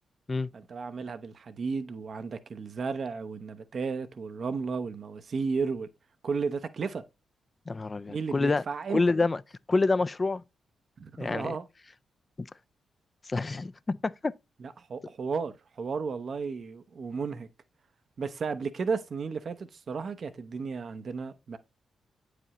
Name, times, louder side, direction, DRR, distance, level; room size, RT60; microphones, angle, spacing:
voice 1, 0.5-5.9 6.2-7.0 8.1-9.0 11.0-11.7 14.6-17.5 18.2-21.6, right 5 dB, 55° right, 0.7 m, -33 dB
voice 2, 7.7-8.6 8.9-9.4 9.7-10.4 11.2-11.6 12.4-12.5 13.3-14.3, left 3 dB, 35° left, 0.3 m, -27 dB
8.5 x 5.0 x 2.9 m
hypercardioid pair, 40°, 0 cm